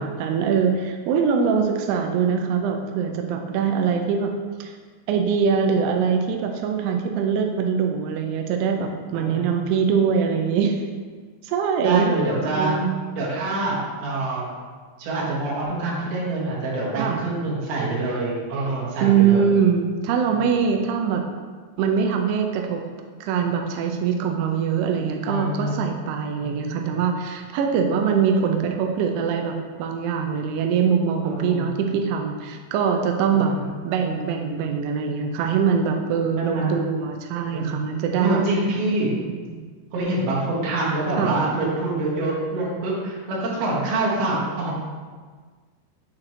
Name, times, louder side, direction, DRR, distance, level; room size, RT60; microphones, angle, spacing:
voice 1, 0.0-4.3 4.6-4.7 5.1-10.8 11.4-12.1 12.5-12.9 17.0-17.2 19.0-21.2 21.8-22.8 23.2-33.5 33.8-38.4 39.5-39.7 41.2-41.4, right 6 dB, 90° right, 3 dB, 2.3 m, -23 dB
voice 2, 9.1-9.5 11.8-12.8 13.1-14.4 15.0-19.5 25.2-25.7 26.4-26.7 31.2-31.6 33.4-33.6 36.4-36.7 37.5-37.7 38.2-39.2 39.9-44.8, right 2 dB, 65° right, -6 dB, 3.1 m, -25 dB
7.5 x 3.8 x 4.5 m, 1.5 s
omnidirectional pair, 5.3 m